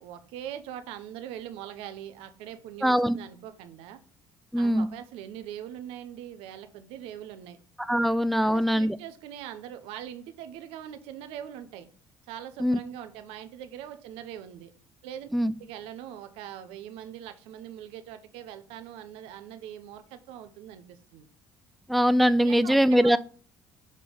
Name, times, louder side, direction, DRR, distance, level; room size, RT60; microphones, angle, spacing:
voice 1, 0.0-4.0 4.6-7.6 8.4-11.9 12.3-14.7 15.0-15.3 15.6-21.3 22.4-23.2, right 10 dB, 80° right, 9 dB, 0.8 m, -42 dB
voice 2, 2.8-3.2 4.5-4.9 7.9-9.0 12.6-12.8 15.3-15.5 21.9-23.2, equal, ahead, 14 dB, 0.4 m, -22 dB
6.6 x 3.3 x 5.4 m, 0.42 s
supercardioid pair, 65°, 10 cm